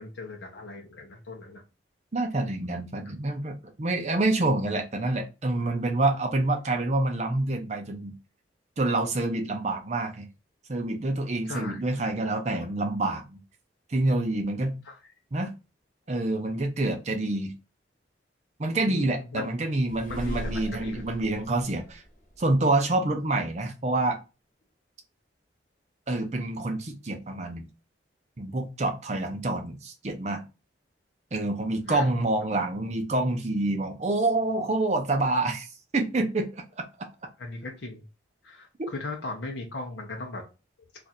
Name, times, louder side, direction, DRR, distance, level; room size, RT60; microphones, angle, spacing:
voice 1, 0.0-1.6 11.4-11.8 14.8-15.0 18.9-19.5 20.1-21.0 31.9-32.1 37.4-38.0 38.4-40.4, left 3 dB, 75° left, 0.7 m, -38 dB
voice 2, 2.1-8.1 8.8-10.3 10.7-13.4 13.9-14.8 15.3-15.5 16.1-17.5 18.6-22.0 22.4-24.2 26.1-27.7 28.4-30.4 31.3-36.6, right 2 dB, 35° right, 0.5 m, -27 dB
sound 1, 19.8-22.8, equal, 45° left, 1.1 m, -38 dB
2.5 x 2.5 x 4.1 m
head